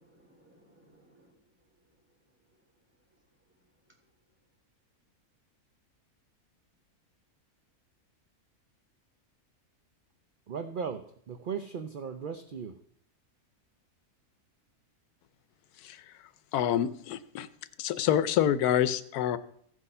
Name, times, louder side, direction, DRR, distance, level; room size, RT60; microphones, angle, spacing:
voice 1, 0.0-4.2, right 1 dB, 5° right, -2 dB, 3.6 m, -66 dB
voice 2, 10.5-12.8, right 6 dB, 60° right, 8 dB, 0.5 m, -37 dB
voice 3, 16.5-17.5 17.8-19.4, left 10 dB, 90° left, 15 dB, 1.1 m, -27 dB
15.5 x 6.3 x 5.5 m, 0.66 s
omnidirectional pair, 1.6 m